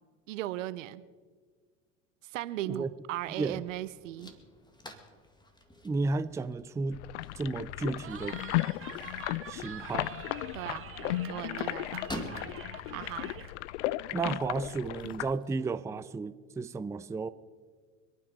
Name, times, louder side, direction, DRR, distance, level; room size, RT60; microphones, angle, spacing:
voice 1, 0.3-1.0 2.2-4.3 10.5-12.1 12.9-13.3, right 15 dB, 75° right, 15 dB, 0.9 m, -37 dB
sound 1, 3.2-15.6, left 1 dB, 10° left, 2.1 m, -49 dB
voice 2, 5.8-7.0 7.3-8.4 9.5-10.1 14.1-17.3, right 3 dB, 10° right, 12 dB, 0.5 m, -33 dB
sound 2, 6.9-15.3, left 17 dB, 65° left, 0.5 m, -35 dB
Cheering, 8.0-13.5, right 9 dB, 35° right, 1.6 m, -46 dB
26.0 x 9.3 x 5.4 m, 1.5 s
hypercardioid pair, 95°, 38 cm